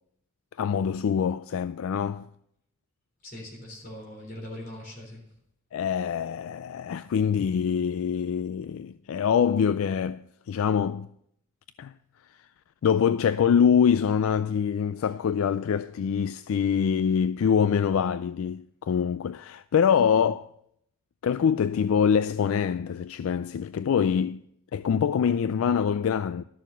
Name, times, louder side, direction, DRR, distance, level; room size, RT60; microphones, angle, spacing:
voice 1, 0.6-2.3 5.7-11.1 11.8-11.9 12.8-20.5 21.2-24.4 24.7-26.4, left 7 dB, 75° left, 0.3 m, -24 dB
voice 2, 3.2-5.2, left 1 dB, 45° left, 3.7 m, -41 dB
12.5 x 6.9 x 5.9 m
head